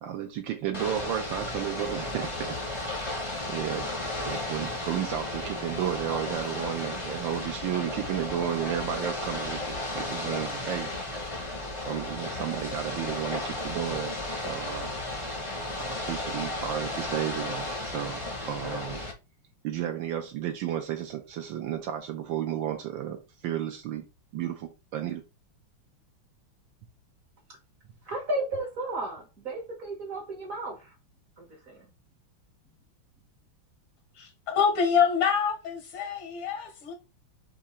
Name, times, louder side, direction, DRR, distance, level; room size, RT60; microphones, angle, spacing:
voice 1, 0.0-2.9 3.5-10.9 11.8-14.9 15.8-19.0 19.6-24.1 24.3-25.2, right 10 dB, 75° right, 1.3 m, -33 dB
Ocean / Boat Water vehicle, 0.7-19.1, left 2 dB, 30° left, 0.5 m, -34 dB
voice 2, 28.0-30.9 31.4-31.8, right 2 dB, 50° right, 1.2 m, -34 dB
voice 3, 34.1-36.9, left 6 dB, 80° left, 1.7 m, -26 dB
4.8 x 2.6 x 4.2 m
omnidirectional pair, 2.3 m